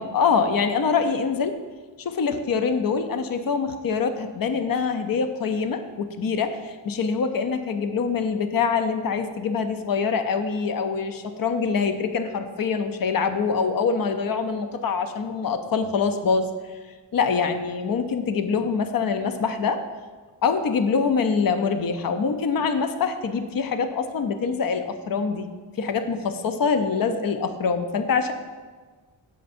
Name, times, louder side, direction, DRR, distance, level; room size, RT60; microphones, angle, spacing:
voice 1, 0.0-1.6 2.0-16.5 17.1-19.8 20.4-25.5 25.8-28.3, left 5 dB, 50° left, 8 dB, 0.6 m, -24 dB
15.5 x 5.3 x 2.6 m, 1.4 s
wide cardioid pair, 110°, 44 cm